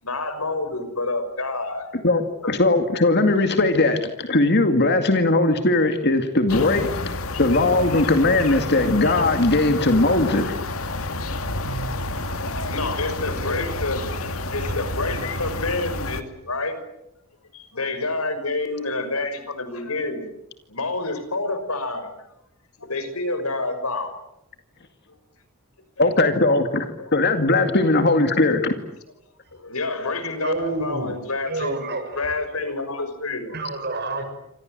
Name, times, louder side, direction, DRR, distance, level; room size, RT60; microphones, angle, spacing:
voice 1, 0.0-1.9 2.4-2.5 8.5-8.6 11.4-11.6 12.7-14.1 14.5-16.8 17.5-20.3 20.7-22.1 22.8-24.1 25.1-25.2 27.0-27.1 29.5-33.6 34.2-34.3, left 3 dB, 85° left, 10 dB, 6.0 m, -28 dB
voice 2, 2.0-6.9 7.4-10.6 26.0-28.7, left 2 dB, 50° left, 7 dB, 2.2 m, -19 dB
sound 1, 6.5-16.2, left 2 dB, 70° left, 2.4 m, -29 dB
voice 3, 30.4-31.1 31.5-32.3 33.5-34.2, right 2 dB, 50° right, 7 dB, 6.4 m, -28 dB
28.5 x 26.5 x 7.8 m, 0.85 s
head